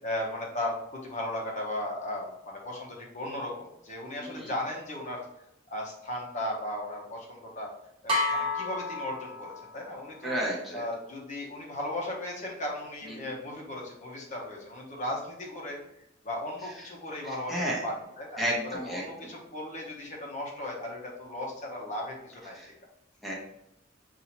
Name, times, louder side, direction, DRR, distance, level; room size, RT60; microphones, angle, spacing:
voice 1, 0.0-5.2 5.7-7.7 8.0-10.4 10.7-15.8 16.2-22.6, left 1 dB, 40° left, -2 dB, 0.9 m, -36 dB
voice 2, 4.2-4.5 10.2-10.8 17.2-17.8 18.4-19.0 22.5-22.7 23.2-23.3, equal, ahead, -5 dB, 0.9 m, -32 dB
sound 1, 8.1-9.9, left 2 dB, 30° right, 1.1 m, -30 dB
5.5 x 2.7 x 2.9 m, 0.84 s
head